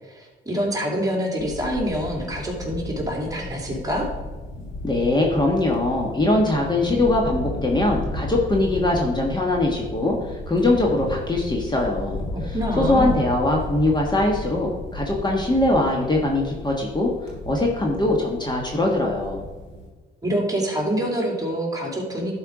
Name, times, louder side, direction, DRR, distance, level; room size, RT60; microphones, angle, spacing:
voice 1, 0.1-4.1 12.3-13.2 20.2-22.3, equal, 20° right, -1 dB, 2.5 m, -26 dB
sound 1, 1.4-19.9, left 2 dB, 85° left, 3.1 m, -34 dB
voice 2, 4.8-19.4, left 2 dB, 20° left, 0 dB, 1.5 m, -22 dB
11.5 x 4.5 x 4.9 m, 1.3 s
cardioid pair, 90°, 20 cm